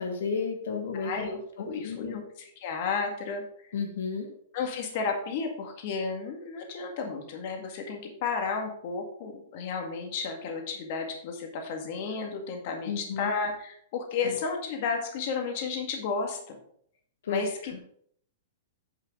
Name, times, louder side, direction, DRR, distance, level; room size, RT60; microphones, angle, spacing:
voice 1, 0.0-1.3 1.8-2.2 3.7-4.3 12.9-13.3 14.2-14.4 17.2-17.8, left 5 dB, 85° left, 3 dB, 1.7 m, -32 dB
voice 2, 0.9-3.7 4.5-16.6 17.3-17.8, left 5 dB, 50° left, 3 dB, 2.0 m, -33 dB
9.1 x 4.9 x 4.8 m, 0.64 s
hypercardioid pair, 150°, 0 cm